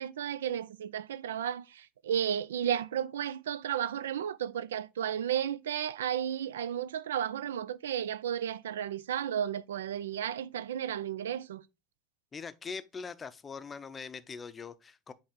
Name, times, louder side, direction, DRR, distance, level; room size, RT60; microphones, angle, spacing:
voice 1, 0.0-11.6, right 9 dB, 75° right, 0.3 m, -33 dB
voice 2, 12.3-15.1, left 5 dB, 25° left, 0.5 m, -42 dB
7.6 x 3.3 x 3.6 m
hypercardioid pair, 80°, 0 cm